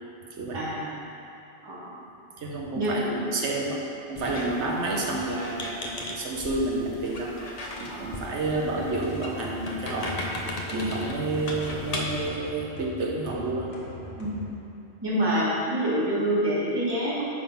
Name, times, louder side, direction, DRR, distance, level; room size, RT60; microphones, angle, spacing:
voice 1, 0.5-0.9 1.6-1.9 2.7-3.1 7.9-8.1 10.7-10.9 14.2-14.4 15.0-17.2, right 1 dB, 20° right, -8 dB, 1.7 m, -27 dB
voice 2, 2.4-3.8 4.1-7.3 7.8-10.2 10.7-13.7, right 2 dB, 80° right, -1 dB, 1.2 m, -30 dB
Squeak, 4.2-12.3, left 1 dB, 40° left, 0.8 m, -37 dB
sound 1, 8.2-14.5, left 2 dB, 65° left, 1.4 m, -41 dB
9.5 x 3.8 x 5.7 m, 2.6 s
omnidirectional pair, 1.2 m